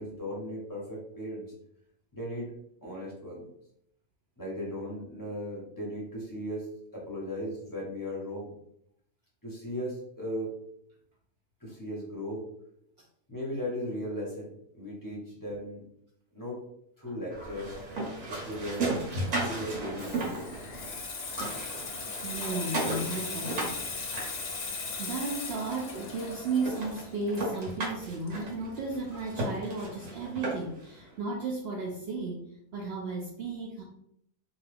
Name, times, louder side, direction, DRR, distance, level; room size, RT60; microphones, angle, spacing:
voice 1, 0.0-1.5 2.1-2.5 2.8-3.4 4.4-8.5 9.4-10.5 11.6-12.5 13.3-15.8 16.3-16.6 17.0-17.8 18.3-19.1 19.3-20.5, equal, 15° left, -5 dB, 0.7 m, -37 dB
sound 1, 17.3-21.0 21.3-25.0 25.7-25.8 26.2-26.3 26.6-30.9, right 2 dB, 60° right, 1.1 m, -35 dB
Water tap faucet / Sink (filling or washing), 19.6-28.9 29.2-29.5, left 4 dB, 60° left, 0.9 m, -38 dB
voice 2, 22.2-23.9 24.5-24.7 25.0-33.8, right 3 dB, 80° right, -1 dB, 0.5 m, -34 dB
2.6 x 2.4 x 3.3 m, 0.70 s
omnidirectional pair, 1.6 m